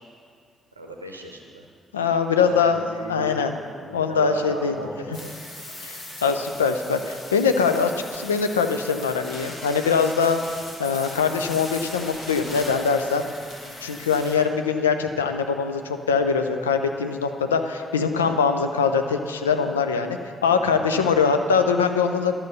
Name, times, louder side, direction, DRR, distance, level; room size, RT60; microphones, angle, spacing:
voice 1, 0.8-1.6 2.4-3.4 3.8-5.3 20.9-21.3, right 2 dB, 85° right, 2 dB, 0.7 m, -37 dB
voice 2, 1.9-2.8 3.1-3.6 3.9-4.8 5.8-10.4 10.8-13.3 13.8-22.4, left 5 dB, 80° left, 7 dB, 0.4 m, -22 dB
sound 1, 5.1-14.4, left 1 dB, 55° left, 2.3 m, -39 dB
12.0 x 5.6 x 6.7 m, 2.2 s
figure-of-eight pair, 40°, 0 cm